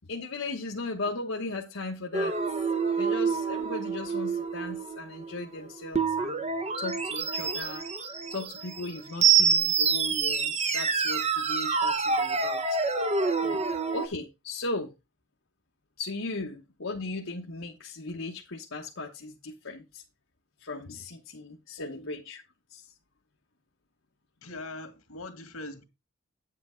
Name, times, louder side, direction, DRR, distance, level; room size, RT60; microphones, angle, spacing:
voice 1, 0.1-2.3 3.0-6.5 6.8-7.8 8.3-12.8 13.4-13.6 13.9-14.9 16.0-20.0 20.6-22.4 22.7-22.9, left 2 dB, 65° left, 1.2 m, -37 dB
sound 1, 2.1-14.1, right 5 dB, 30° right, 0.9 m, -27 dB
voice 2, 21.8-22.1 24.4-25.8, left 2 dB, 85° left, 2.2 m, -42 dB
9.4 x 7.7 x 3.8 m
head